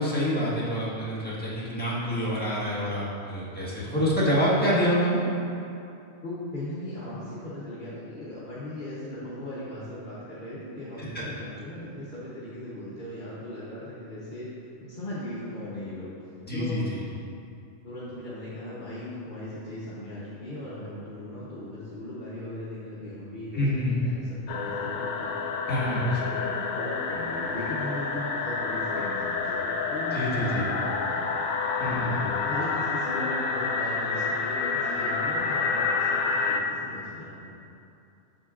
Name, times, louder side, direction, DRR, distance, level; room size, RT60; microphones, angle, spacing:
voice 1, 0.0-5.2 11.0-11.2 16.5-17.0 23.5-24.0 25.7-26.2 30.1-30.7 31.8-32.2, equal, 5° left, -9 dB, 1.5 m, -27 dB
voice 2, 6.2-14.5 14.8-16.1 16.5-16.8 17.8-23.6 24.0-25.4 25.8-31.4 31.9-37.5, left 1 dB, 40° left, -10 dB, 1.1 m, -38 dB
sound 1, 24.5-36.6, left 4 dB, 85° left, 1.0 m, -29 dB
7.7 x 6.8 x 2.5 m, 2.7 s
omnidirectional pair, 1.4 m